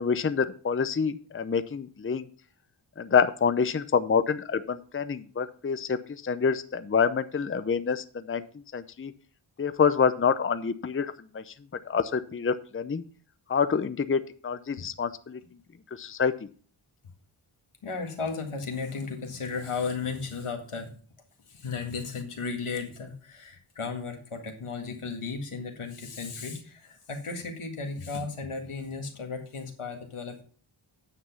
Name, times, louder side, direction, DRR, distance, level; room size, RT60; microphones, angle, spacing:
voice 1, 0.0-2.3 3.0-6.0 6.2-8.4 8.7-9.1 9.6-11.5 11.9-13.0 13.5-15.4 16.0-16.3, left 6 dB, 25° left, 12 dB, 0.6 m, -27 dB
voice 2, 17.8-21.0 21.5-30.4, left 4 dB, 85° left, 3 dB, 2.0 m, -35 dB
9.5 x 6.0 x 5.7 m, 0.42 s
cardioid pair, 50°, 49 cm